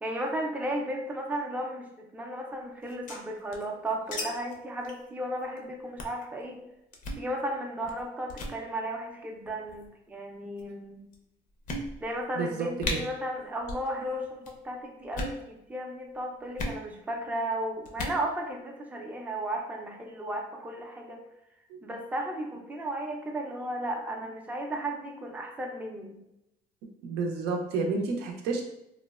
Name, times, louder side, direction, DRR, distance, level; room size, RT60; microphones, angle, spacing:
voice 1, 0.0-6.6 7.1-11.0 12.0-21.2 21.8-26.2, right 1 dB, 10° right, 1 dB, 0.4 m, -34 dB
sound 1, 2.8-4.2 4.5-4.6 4.8-5.0 5.4-5.6 6.0-6.2 6.9-7.2 7.8-8.0 8.3-8.6 9.5-9.9 10.6-10.7 11.1-11.2 11.7-12.2 12.5-12.6 12.8-13.0 13.6-13.9 14.1-14.5 15.0-15.4 16.6-16.8 17.8-18.2, left 1 dB, 50° left, 0.5 m, -35 dB
voice 2, 12.3-13.0 21.7-21.8 27.0-28.6, right 4 dB, 85° right, 2 dB, 0.5 m, -30 dB
3.0 x 2.0 x 2.3 m, 0.84 s
cardioid pair, 110°, 17 cm